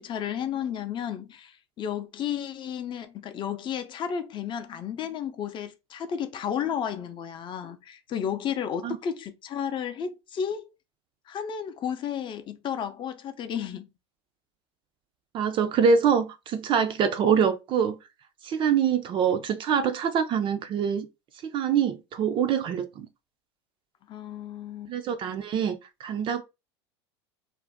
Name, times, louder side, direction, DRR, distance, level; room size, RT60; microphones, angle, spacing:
voice 1, 0.0-10.7 11.3-13.9 24.1-24.9, left 8 dB, 35° left, 0.5 m, -32 dB
voice 2, 15.3-18.0 18.4-21.1 21.4-23.1 24.9-26.4, right 7 dB, 35° right, 0.4 m, -25 dB
2.5 x 2.1 x 3.3 m
hypercardioid pair, 90°, 14 cm